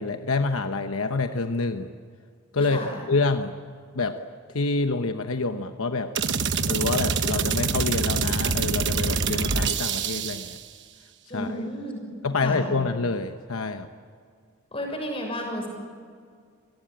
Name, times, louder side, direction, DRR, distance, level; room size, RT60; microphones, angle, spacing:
voice 1, 0.0-1.9 2.5-2.8 3.1-3.6 3.9-4.2 4.5-6.1 6.7-10.6 11.3-11.5 12.2-13.9, left 3 dB, 75° left, 7 dB, 1.0 m, -27 dB
voice 2, 2.6-3.0 11.3-12.0 12.4-12.7 14.7-15.7, equal, 25° left, 1 dB, 6.6 m, -32 dB
sound 1, 6.1-10.6, right 5 dB, 55° right, 1.2 m, -25 dB
28.0 x 18.5 x 9.0 m, 2.1 s
head